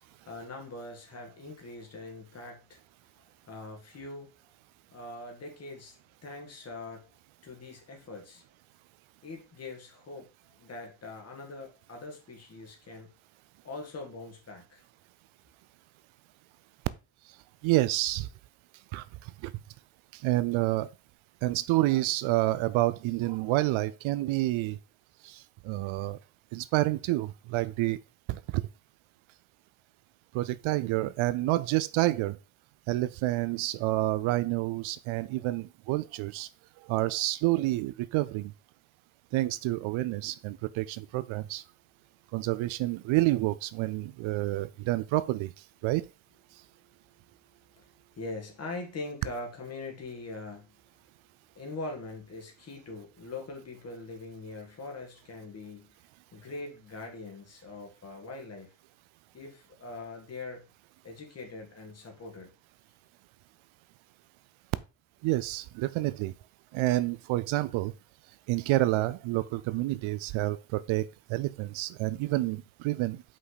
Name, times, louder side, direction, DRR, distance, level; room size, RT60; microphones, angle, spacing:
voice 1, 0.0-2.8 3.2-4.5 4.9-7.1 7.4-8.4 9.2-10.3 10.6-13.1 13.6-14.8 46.5-51.1 51.5-56.0 56.3-58.7 59.3-60.7 61.0-62.5, left 2 dB, 30° left, 2.0 m, -43 dB
voice 2, 17.6-18.3 18.9-19.5 20.1-20.9 21.4-24.8 25.2-26.2 26.5-28.0 28.3-28.6 30.3-32.4 32.9-36.5 36.8-38.5 39.3-41.6 42.3-46.1 46.5-46.6 65.2-66.3 66.7-67.9 68.5-73.2, right 17 dB, 75° right, 0.6 m, -29 dB
5.6 x 5.1 x 4.0 m
cardioid pair, 155°, 49 cm